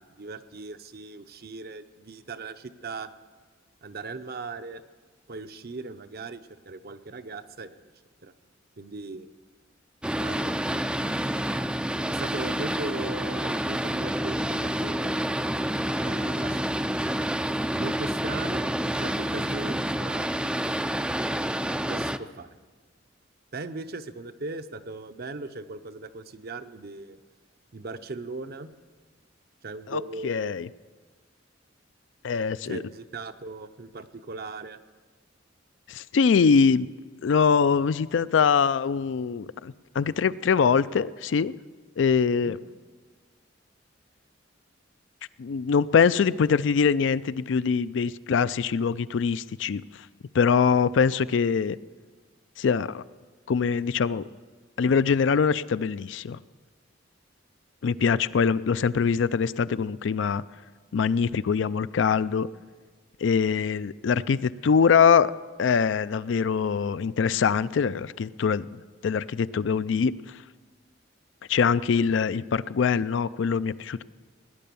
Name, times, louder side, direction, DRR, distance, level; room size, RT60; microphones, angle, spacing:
voice 1, 0.0-3.1 3.8-4.8 5.3-7.9 8.2-8.3 8.8-9.3 10.2-11.1 12.1-15.2 16.0-16.6 17.8-20.9 21.9-22.6 23.5-27.2 27.7-28.7 29.6-30.5 32.6-34.8 42.4-42.6, right 3 dB, 55° right, 10 dB, 0.7 m, -39 dB
Boat Water vehicle, 10.0-22.2, right 1 dB, 5° right, 0.4 m, -28 dB
voice 2, 29.9-30.7 32.2-32.8 35.9-36.9 37.2-41.5 42.0-42.6 45.4-49.8 50.3-51.8 52.6-53.0 53.5-54.2 54.8-56.4 57.8-60.4 60.9-62.5 63.2-65.3 65.6-68.7 69.0-70.1 71.5-74.0, left 6 dB, 65° left, 16 dB, 0.4 m, -23 dB
17.5 x 10.5 x 6.9 m, 1.4 s
head